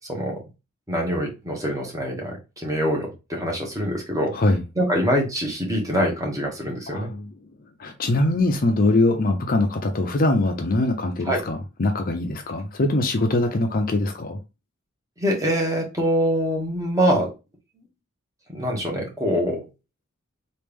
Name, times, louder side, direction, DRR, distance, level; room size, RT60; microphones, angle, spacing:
voice 1, 0.9-4.3 4.8-7.1 11.2-11.4 15.2-17.3 18.5-19.7, equal, 15° right, 1.1 m, -24 dB
voice 2, 6.9-7.3 7.8-14.4, left 2 dB, 45° left, 0.5 m, -22 dB
3.2 x 2.5 x 3.4 m
head